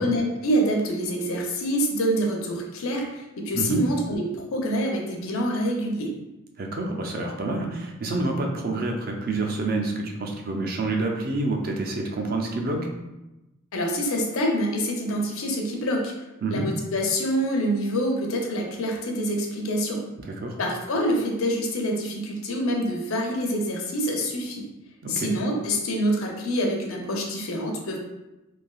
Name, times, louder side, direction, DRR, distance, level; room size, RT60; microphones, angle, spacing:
voice 1, 0.0-6.1 13.7-16.1 16.5-20.0 20.6-24.6 25.1-28.0, equal, 80° left, 1 dB, 0.6 m, -26 dB
voice 2, 6.6-12.8 16.4-16.7 20.2-20.6 25.0-25.3, right 2 dB, 45° right, 2 dB, 0.4 m, -28 dB
3.2 x 2.6 x 2.3 m, 1.0 s
head